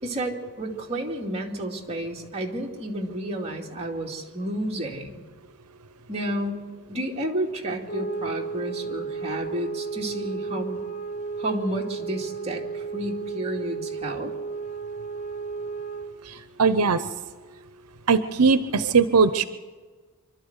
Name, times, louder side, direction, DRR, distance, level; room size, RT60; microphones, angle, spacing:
voice 1, 0.0-5.3 6.1-6.6 6.9-10.8 11.4-14.3, right 1 dB, 30° right, -1 dB, 2.4 m, -31 dB
sound 1, 7.9-16.2, right 4 dB, 60° left, 3.2 m, -33 dB
voice 2, 16.6-17.0 18.1-19.4, right 4 dB, 90° right, 12 dB, 0.8 m, -19 dB
26.0 x 12.5 x 8.1 m, 1.4 s
head